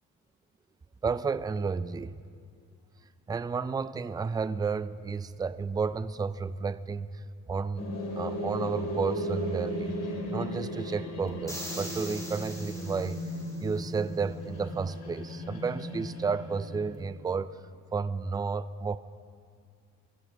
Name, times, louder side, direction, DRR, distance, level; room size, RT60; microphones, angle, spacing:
voice 1, 1.0-2.2 3.3-7.2 7.5-7.8 8.2-9.9 10.3-13.2 13.6-17.5 17.9-19.0, right 5 dB, 15° right, 14 dB, 0.4 m, -32 dB
sound 1, 7.8-17.1, equal, 55° left, 3.3 m, -36 dB
sound 2, 11.5-13.8, equal, 10° left, 4.6 m, -42 dB
23.5 x 15.0 x 3.4 m, 2.3 s
cardioid pair, 90°, 30 cm